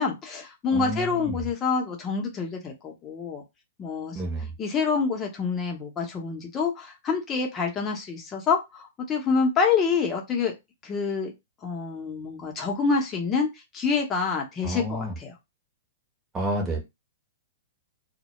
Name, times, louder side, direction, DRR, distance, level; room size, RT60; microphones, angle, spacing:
voice 1, 0.0-3.4 3.8-4.2 4.6-10.5 10.8-11.3 11.6-13.5 13.7-15.3, left 5 dB, 25° left, 2 dB, 0.7 m, -27 dB
voice 2, 0.7-1.4 4.1-4.5 14.6-15.1 16.3-16.8, right 1 dB, 15° right, 0 dB, 0.8 m, -30 dB
2.1 x 2.0 x 2.9 m, 0.22 s
hypercardioid pair, 125°, 0 cm